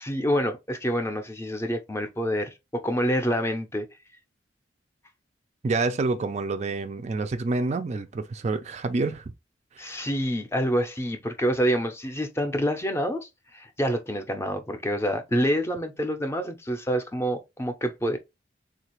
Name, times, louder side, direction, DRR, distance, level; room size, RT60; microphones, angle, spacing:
voice 1, 0.0-3.9 9.8-18.2, equal, 15° left, 0.5 m, -27 dB
voice 2, 5.6-9.3 9.8-10.0, right 3 dB, 35° right, 0.4 m, -28 dB
3.7 x 2.4 x 3.0 m
head